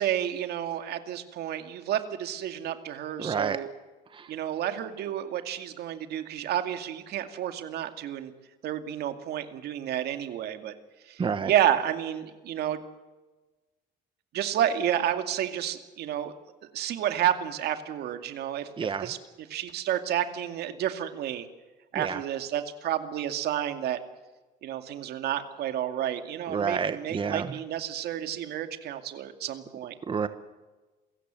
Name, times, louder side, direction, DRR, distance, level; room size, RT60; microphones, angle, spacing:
voice 1, 0.0-3.7 4.3-8.3 8.6-10.7 11.1-12.8 14.3-16.3 16.7-21.5 21.9-24.0 24.6-29.9, right 11 dB, 75° right, 7 dB, 2.4 m, -30 dB
voice 2, 3.2-3.6 4.2-4.3 11.2-11.5 18.8-19.1 21.9-22.2 26.5-27.5 30.1-30.3, right 6 dB, 30° right, 11 dB, 1.1 m, -29 dB
27.5 x 16.5 x 7.7 m, 1.2 s
cardioid pair, 110°, 17 cm